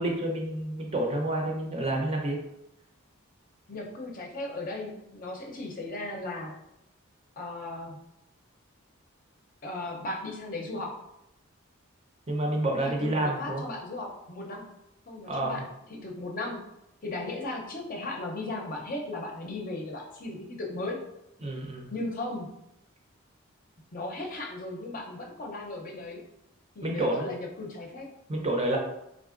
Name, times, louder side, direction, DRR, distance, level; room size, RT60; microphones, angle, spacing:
voice 1, 0.0-2.4 12.3-13.6 15.3-15.6 21.4-21.9 26.8-27.3 28.3-28.8, right 1 dB, 30° right, 0 dB, 0.6 m, -29 dB
voice 2, 3.7-6.6 7.4-8.0 9.6-10.9 12.8-14.7 15.1-15.6 15.9-16.6 17.0-21.0 21.9-22.5 23.9-26.2 26.8-28.1, left 2 dB, 40° left, 0 dB, 0.6 m, -36 dB
3.7 x 3.5 x 2.5 m, 0.85 s
head